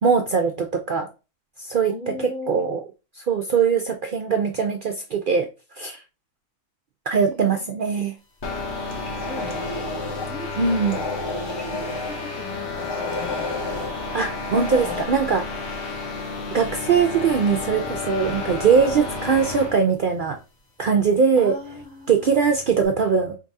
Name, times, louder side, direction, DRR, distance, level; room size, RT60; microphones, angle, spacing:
voice 1, 0.0-1.1 1.6-1.9 2.2-2.8 3.2-5.5 5.8-6.0 7.1-8.1 10.6-11.0 14.1-15.4 16.5-20.4 20.8-21.5 22.1-23.4, right 6 dB, 65° right, 4 dB, 0.5 m, -21 dB
voice 2, 1.9-2.7 7.1-7.9 9.1-11.0 11.7-13.7 21.4-22.4, left 3 dB, 80° left, -3 dB, 2.3 m, -39 dB
sound 1, 8.4-19.8, left 3 dB, 60° left, 1.2 m, -31 dB
sound 2, 8.8-10.4 10.8-12.2 12.7-13.9 14.5-15.0, left 2 dB, 25° left, 0.6 m, -31 dB
4.5 x 3.5 x 2.6 m, 0.29 s
omnidirectional pair, 1.4 m